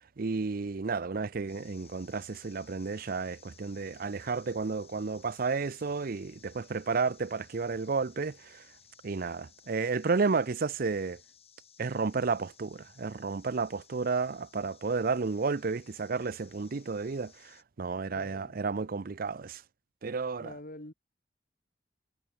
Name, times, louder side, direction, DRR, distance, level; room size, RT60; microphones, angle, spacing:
voice 1, 0.2-8.6 9.0-11.2 11.8-19.6 20.0-20.5, right 4 dB, 55° right, 0.6 m, -32 dB
sound 1, 1.5-17.6, left 8 dB, 35° left, 6.6 m, -59 dB
voice 2, 18.1-18.5 20.4-20.9, left 1 dB, 50° left, 4.3 m, -45 dB
head